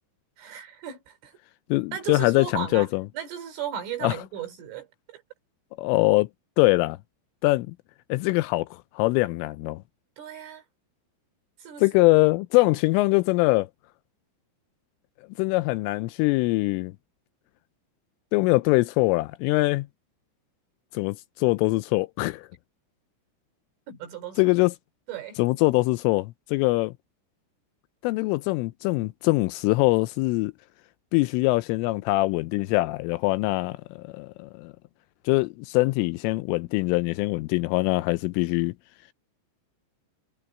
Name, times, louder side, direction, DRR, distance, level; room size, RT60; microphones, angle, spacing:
voice 1, 0.4-1.4 1.9-5.2 10.2-10.6 11.6-12.1 23.9-24.5 25.1-25.4, right 8 dB, 70° right, 6.1 m, -36 dB
voice 2, 1.7-3.0 4.0-4.1 5.8-6.3 6.6-7.0 7.4-7.7 8.1-9.8 11.8-13.7 15.4-16.9 18.3-19.9 20.9-22.5 24.4-24.7 25.4-26.9 28.0-30.5 31.1-34.7 35.3-38.7, left 22 dB, 85° left, 3.0 m, -23 dB
omnidirectional pair, 6.0 m